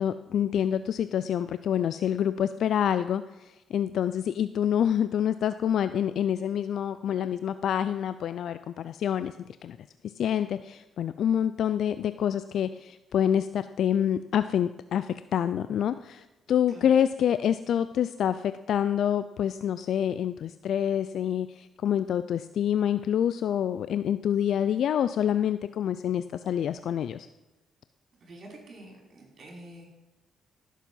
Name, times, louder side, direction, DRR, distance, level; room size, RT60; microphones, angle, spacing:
voice 1, 0.0-9.3 9.6-9.8 10.2-27.3, left 9 dB, 70° left, 12 dB, 0.4 m, -27 dB
voice 2, 28.2-29.8, right 1 dB, 50° right, -1 dB, 5.0 m, -47 dB
16.5 x 7.4 x 5.5 m, 1.1 s
cardioid pair, 90°, 0 cm